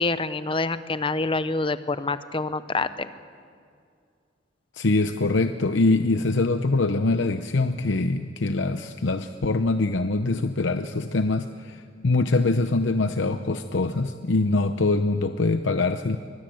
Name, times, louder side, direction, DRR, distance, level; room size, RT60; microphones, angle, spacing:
voice 1, 0.0-3.1, left 3 dB, 30° left, 13 dB, 0.8 m, -26 dB
voice 2, 4.7-16.2, left 3 dB, 80° left, 8 dB, 0.8 m, -23 dB
24.0 x 20.5 x 7.8 m, 2.3 s
head